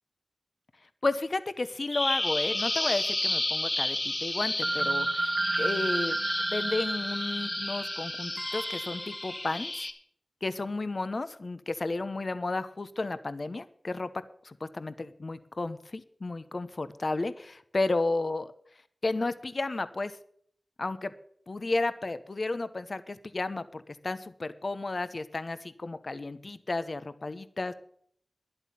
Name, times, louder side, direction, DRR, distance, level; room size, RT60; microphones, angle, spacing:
voice 1, 1.0-6.2 6.5-9.9 10.4-14.1 14.4-18.5 19.0-20.1 20.8-21.1 21.5-27.7, left 2 dB, 55° left, 13 dB, 0.9 m, -32 dB
Bird vocalization bird call bird song, 1.9-9.9, left 2 dB, 35° left, 1.7 m, -32 dB
sound 1, 2.2-3.1 3.3-3.4 4.6-9.5, right 2 dB, 45° right, 0.8 m, -33 dB
11.0 x 8.1 x 7.1 m, 0.63 s
wide cardioid pair, 50°, 0 cm